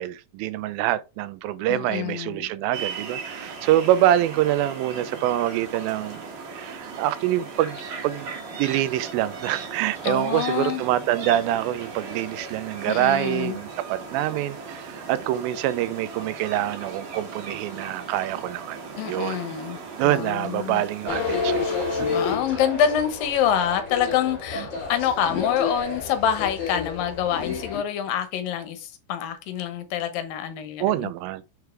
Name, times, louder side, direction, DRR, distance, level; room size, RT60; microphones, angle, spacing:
voice 1, 0.0-6.3 6.5-8.3 8.6-18.8 19.1-19.4 20.0-22.1 30.8-31.4, right 13 dB, 85° right, 2.4 m, -25 dB
voice 2, 1.7-2.5 10.0-10.8 12.9-13.6 19.0-20.8 22.1-31.1, left 9 dB, 75° left, 2.6 m, -26 dB
sound 1, 2.7-22.4, right 4 dB, 65° right, 3.3 m, -38 dB
sound 2, 21.1-27.8, left 5 dB, 40° left, 2.9 m, -30 dB
6.6 x 4.6 x 3.2 m
omnidirectional pair, 4.1 m